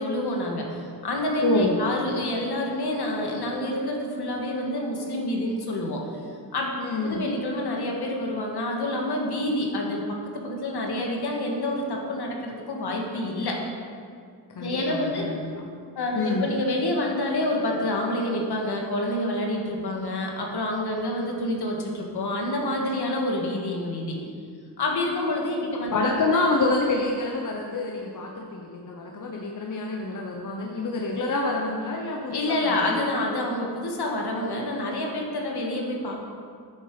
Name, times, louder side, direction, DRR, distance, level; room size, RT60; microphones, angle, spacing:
voice 1, 0.0-6.0 6.5-6.7 7.0-13.6 14.6-15.3 16.0-24.2 24.8-25.9 32.3-36.2, left 1 dB, 70° left, 0 dB, 1.9 m, -28 dB
voice 2, 1.4-1.8 6.8-7.3 14.5-15.4 16.1-16.5 25.9-32.8, left 2 dB, 50° left, 0 dB, 1.0 m, -27 dB
10.0 x 8.2 x 4.9 m, 2.2 s
wide cardioid pair, 110°, 41 cm